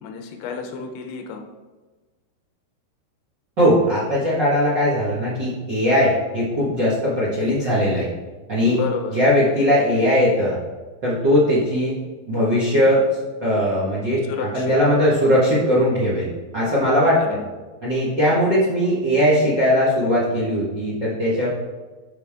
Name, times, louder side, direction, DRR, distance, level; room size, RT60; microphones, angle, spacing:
voice 1, 0.0-1.4 8.7-9.2 14.3-14.7 16.8-17.5, left 6 dB, 80° left, 3 dB, 3.0 m, -31 dB
voice 2, 3.6-8.1 8.5-8.8 9.1-10.6 11.0-12.0 12.3-13.0 13.4-17.4 17.8-21.5, equal, 45° right, -7 dB, 1.4 m, -19 dB
12.5 x 4.7 x 3.7 m, 1.3 s
omnidirectional pair, 4.7 m